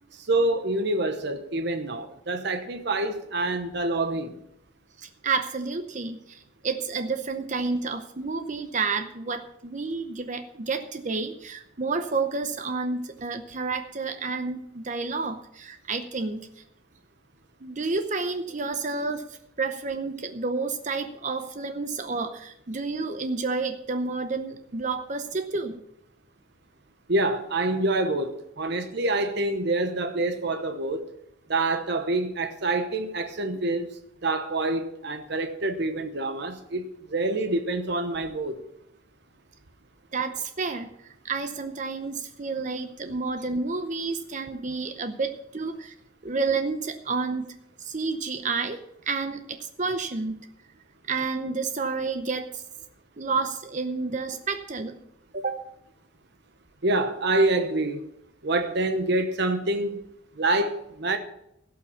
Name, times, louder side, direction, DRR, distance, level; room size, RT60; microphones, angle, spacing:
voice 1, 0.1-4.4 27.1-31.1 31.5-33.9 34.2-38.6 56.8-58.0 58.4-60.0 60.4-61.2, right 2 dB, 60° right, 1.0 m, -26 dB
voice 2, 5.0-16.6 17.6-25.8 40.1-45.9 46.2-48.8 49.1-50.5 51.1-52.6 53.2-55.0 55.3-55.6, right 4 dB, 40° right, 0.7 m, -30 dB
16.5 x 5.8 x 7.0 m
head